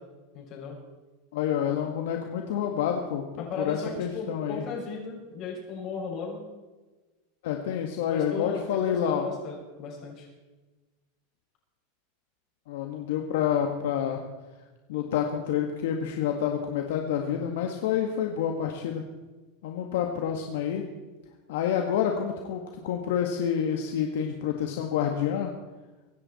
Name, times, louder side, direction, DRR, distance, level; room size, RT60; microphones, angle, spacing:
voice 1, 0.3-0.8 3.4-6.5 8.1-10.3 17.1-17.5, left 5 dB, 40° left, -2 dB, 6.0 m, -36 dB
voice 2, 1.3-4.6 7.4-9.3 12.7-14.2 14.9-19.0 19.6-20.8 21.5-25.5, left 9 dB, 75° left, 3 dB, 1.6 m, -28 dB
24.5 x 10.0 x 4.3 m, 1.2 s
supercardioid pair, 145°, 0 cm